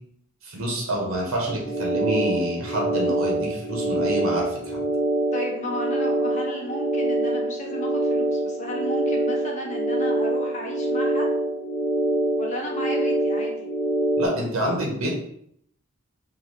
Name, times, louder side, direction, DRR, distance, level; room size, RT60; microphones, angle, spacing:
voice 1, 0.4-4.6 14.2-15.1, right 1 dB, 90° right, -1 dB, 1.1 m, -27 dB
sound 1, 1.5-14.3, right 1 dB, 85° left, 0.8 m, -25 dB
voice 2, 5.3-11.3 12.4-13.7, equal, 35° left, 0 dB, 0.8 m, -34 dB
3.1 x 2.8 x 4.1 m, 0.70 s
head